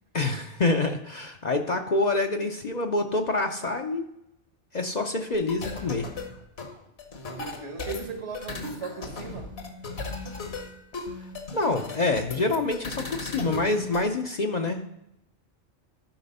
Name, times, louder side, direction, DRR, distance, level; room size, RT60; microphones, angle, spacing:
voice 1, 0.1-4.0 4.7-6.1 11.5-14.8, left 2 dB, 45° left, 4 dB, 0.7 m, -26 dB
sound 1, 5.3-14.1, left 3 dB, 60° left, 1.4 m, -37 dB
voice 2, 7.3-9.5, right 5 dB, 70° right, 3 dB, 1.8 m, -38 dB
12.0 x 5.0 x 5.3 m, 0.85 s
omnidirectional pair, 1.2 m